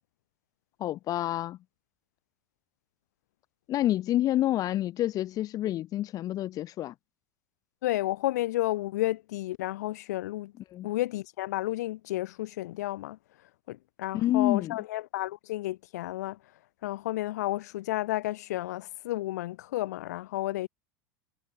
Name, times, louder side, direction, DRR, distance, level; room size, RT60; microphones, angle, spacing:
voice 1, 0.8-1.6 3.7-6.9 10.7-10.9 14.1-14.8, left 13 dB, 40° left, 1.5 m, -28 dB
voice 2, 7.8-10.5 10.8-13.2 13.7-16.4 16.8-20.7, left 16 dB, 60° left, 2.7 m, -31 dB
figure-of-eight pair, 80°, 10 cm